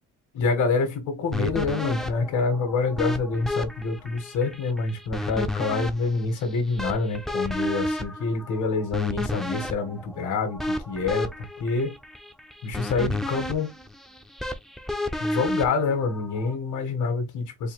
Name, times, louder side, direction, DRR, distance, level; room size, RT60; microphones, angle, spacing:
voice 1, 0.3-11.9 12.6-13.7 15.2-17.7, left 4 dB, 80° left, 1.7 m, -27 dB
sound 1, 1.3-16.6, left 1 dB, ahead, 0.6 m, -32 dB
4.7 x 2.4 x 3.4 m
cardioid pair, 90°, 30 cm